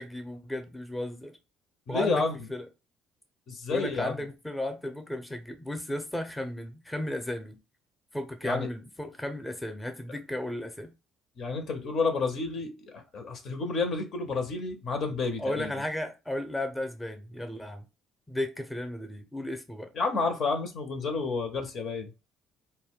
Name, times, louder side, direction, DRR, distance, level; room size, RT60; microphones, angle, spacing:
voice 1, 0.0-1.4 1.9-2.7 3.7-7.6 8.1-10.9 15.4-17.8 18.3-19.9, left 1 dB, 10° left, 0.6 m, -34 dB
voice 2, 1.9-2.4 3.5-4.1 8.4-8.7 11.4-15.7 19.9-22.1, left 4 dB, 60° left, 0.7 m, -30 dB
2.1 x 2.1 x 3.5 m
supercardioid pair, 70°, 0 cm